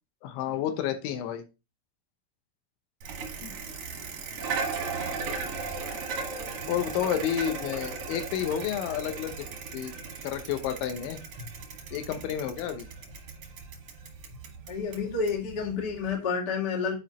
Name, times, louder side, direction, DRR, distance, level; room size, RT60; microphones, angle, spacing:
voice 1, 0.2-1.4 3.4-3.6 6.7-9.5 9.7-9.9 10.2-11.2 11.9-12.9, left 10 dB, 80° left, 7 dB, 3.1 m, -30 dB
Bicycle, 3.0-16.1, right 4 dB, 70° right, 1.4 m, -37 dB
voice 2, 14.7-16.9, left 5 dB, 40° left, -1 dB, 1.4 m, -29 dB
10.5 x 4.9 x 2.9 m, 0.28 s
omnidirectional pair, 5.5 m